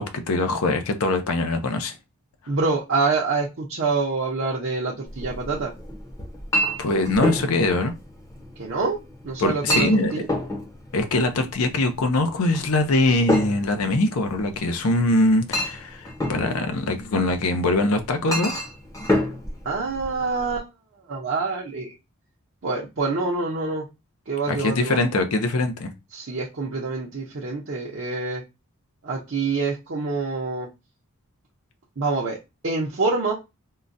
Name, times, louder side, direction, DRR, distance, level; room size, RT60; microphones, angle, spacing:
voice 1, 0.0-2.0 6.8-7.9 9.4-10.1 10.9-18.5 24.5-25.9, left 2 dB, 75° left, 0.6 m, -22 dB
voice 2, 2.5-5.7 8.6-9.0 9.2-10.3 19.6-20.7 21.1-21.9 22.6-23.9 24.3-25.0 26.1-28.4 29.0-30.7 32.0-32.4 32.6-33.3, right 3 dB, 55° right, 0.6 m, -26 dB
Chink clink, 5.1-20.6, equal, 15° left, 0.7 m, -30 dB
3.7 x 2.1 x 2.5 m
head